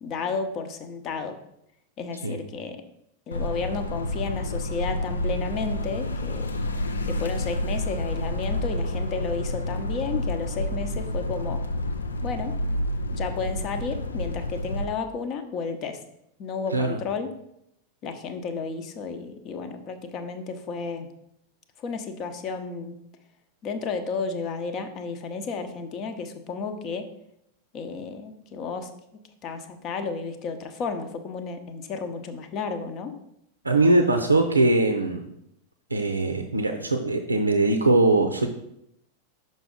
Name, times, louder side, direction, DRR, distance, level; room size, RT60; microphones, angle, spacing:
voice 1, 0.0-1.4 2.0-2.8 3.3-6.5 7.0-11.6 12.2-12.5 13.1-16.0 16.4-17.3 18.0-21.1 21.8-23.0 23.6-27.1 27.7-28.9 29.4-33.1, left 4 dB, 35° left, 8 dB, 0.7 m, -32 dB
sound 1, 3.3-14.8, left 1 dB, 75° left, 0.4 m, -29 dB
voice 2, 33.6-35.2 35.9-38.5, right 2 dB, 80° right, 6 dB, 0.5 m, -21 dB
6.0 x 5.2 x 3.7 m, 0.78 s
figure-of-eight pair, 90°, 0 cm